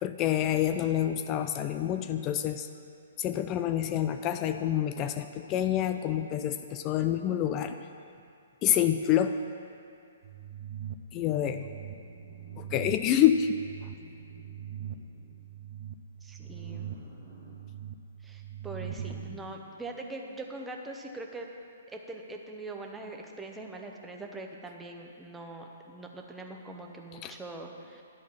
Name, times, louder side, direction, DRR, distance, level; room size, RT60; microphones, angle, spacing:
voice 1, 0.0-2.7 3.2-7.7 8.6-9.3 11.1-11.7 12.6-13.6 27.2-27.3, left 11 dB, 30° left, 9 dB, 0.3 m, -27 dB
sound 1, 10.2-19.4, right 10 dB, 50° right, 0.5 m, -42 dB
sound 2, 11.9-15.5 16.4-17.6 18.7-19.5, left 1 dB, 10° left, 2.0 m, -53 dB
voice 2, 16.2-16.9 18.2-21.5 21.9-28.0, right 2 dB, 10° right, 1 dB, 0.9 m, -42 dB
10.5 x 4.4 x 7.3 m, 2.4 s
figure-of-eight pair, 125°, 0 cm